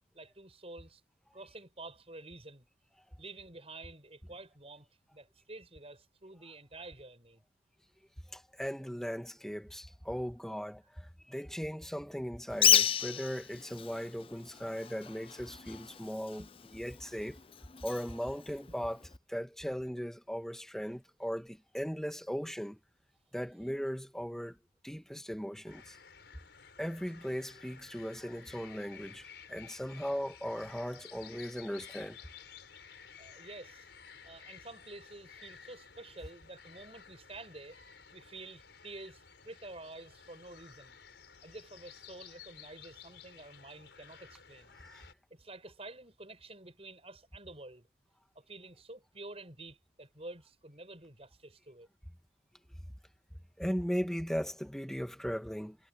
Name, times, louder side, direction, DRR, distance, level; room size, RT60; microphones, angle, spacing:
voice 1, 0.1-1.0 1.3-2.7 3.2-7.4 16.4-16.5 33.2-33.9 34.2-37.8 38.1-41.0 41.4-44.8 45.3-47.9 48.3-51.9, right 2 dB, 35° right, 7.6 m, -49 dB
voice 2, 8.3-16.4 16.7-17.4 17.8-22.8 23.3-24.6 24.8-26.0 26.8-32.2 44.8-45.1 53.6-55.8, equal, 5° left, 1.6 m, -38 dB
Bird, 12.5-19.2, left 9 dB, 30° left, 0.5 m, -33 dB
sound 1, 25.7-45.1, left 7 dB, 80° left, 4.5 m, -54 dB
head